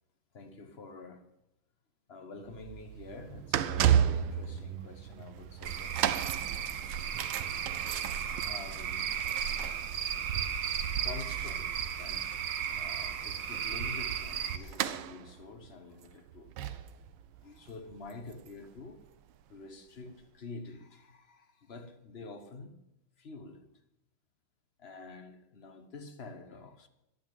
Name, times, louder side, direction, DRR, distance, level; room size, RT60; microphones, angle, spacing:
voice 1, 0.3-1.3 2.1-6.5 8.4-10.1 10.8-12.4 12.7-16.8 17.4-19.1 19.5-22.8 23.2-23.7 24.8-26.9, left 3 dB, 40° left, 8 dB, 1.0 m, -48 dB
sound 1, 2.4-19.4 20.1-20.2, right 10 dB, 85° right, 1.5 m, -35 dB
Cricket / Frog, 5.6-14.6, right 8 dB, 70° right, 1.5 m, -35 dB
11.0 x 9.4 x 9.1 m, 0.87 s
omnidirectional pair, 2.2 m